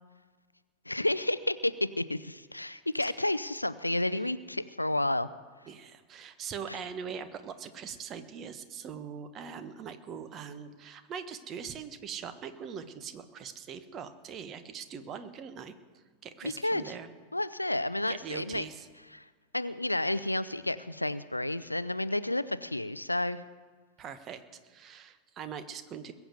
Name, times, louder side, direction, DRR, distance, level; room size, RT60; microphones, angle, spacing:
voice 1, 0.9-5.3 6.7-6.8 16.4-16.9 17.3-18.6 19.1-19.2 19.5-23.4, left 1 dB, 85° left, 15 dB, 0.5 m, -31 dB
voice 2, 5.7-15.7 16.2-17.1 18.1-18.9 24.0-26.1, right 7 dB, 30° right, 10 dB, 1.3 m, -42 dB
21.5 x 7.2 x 8.2 m, 1.5 s
figure-of-eight pair, 90°, 0 cm